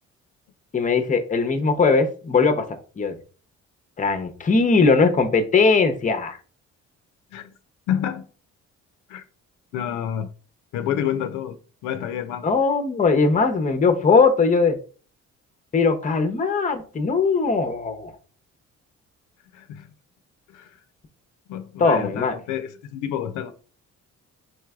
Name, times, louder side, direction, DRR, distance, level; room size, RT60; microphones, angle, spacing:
voice 1, 0.7-3.2 4.0-6.4 12.4-14.8 15.7-18.1 21.8-22.3, left 4 dB, 25° left, 0.6 m, -20 dB
voice 2, 7.9-8.2 9.1-9.2 9.7-10.3 10.7-11.6 11.8-12.5 19.5-19.9 20.5-20.7 21.5-23.5, left 10 dB, 90° left, 0.5 m, -28 dB
4.2 x 3.1 x 2.3 m
cardioid pair, 90°, 30 cm